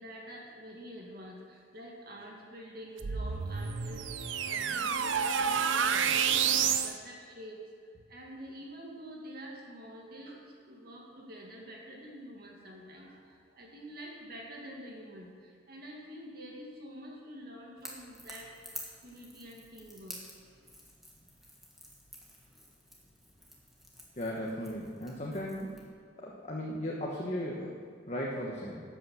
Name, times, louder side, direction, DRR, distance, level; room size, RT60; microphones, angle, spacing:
voice 1, 0.0-4.1 4.4-6.3 6.8-7.6 8.1-10.4 10.7-18.5 19.0-20.2, equal, 50° right, -2 dB, 2.2 m, -47 dB
sound 1, 3.0-6.9, right 7 dB, 80° right, 0.7 m, -29 dB
Crackle / Crack, 17.8-25.9, equal, ahead, 1.6 m, -50 dB
voice 2, 24.2-25.7 26.2-28.8, equal, 35° left, -3 dB, 1.2 m, -36 dB
12.0 x 8.5 x 7.1 m, 2.1 s
head